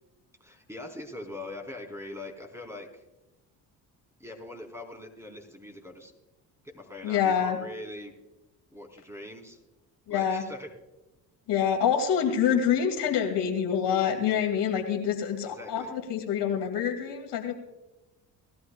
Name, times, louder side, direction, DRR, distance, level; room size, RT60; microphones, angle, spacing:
voice 1, 0.4-3.0 4.2-6.1 6.6-8.1 8.7-9.6 10.1-10.7 15.6-15.9, left 2 dB, 5° right, 1 dB, 4.1 m, -42 dB
voice 2, 7.0-7.6 10.1-10.4 11.5-17.5, left 8 dB, 65° left, 2 dB, 2.5 m, -26 dB
19.5 x 13.0 x 2.4 m, 1.0 s
supercardioid pair, 65°, 44 cm